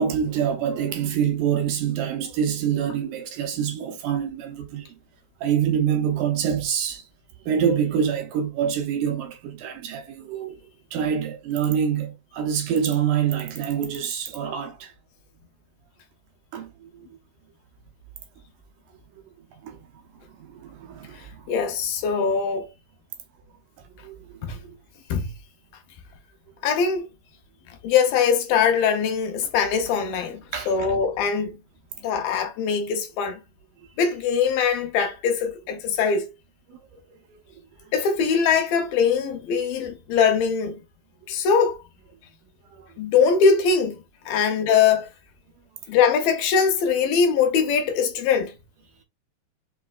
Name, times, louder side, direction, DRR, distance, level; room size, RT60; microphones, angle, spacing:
voice 1, 0.0-4.9 5.4-7.0 7.5-10.6 10.9-14.9 16.5-16.7 16.9-17.1 19.6-19.8 20.4-21.3 24.0-24.4 30.5-31.0 36.7-36.8, right 8 dB, 80° right, 1.9 m, -26 dB
voice 2, 21.5-22.7 24.4-24.6 25.1-25.3 26.6-27.1 27.8-31.6 32.0-33.4 34.0-36.3 37.9-40.8 41.3-41.8 43.0-45.1 45.9-48.5, left 6 dB, 75° left, 2.4 m, -22 dB
5.6 x 3.1 x 2.3 m
omnidirectional pair, 4.3 m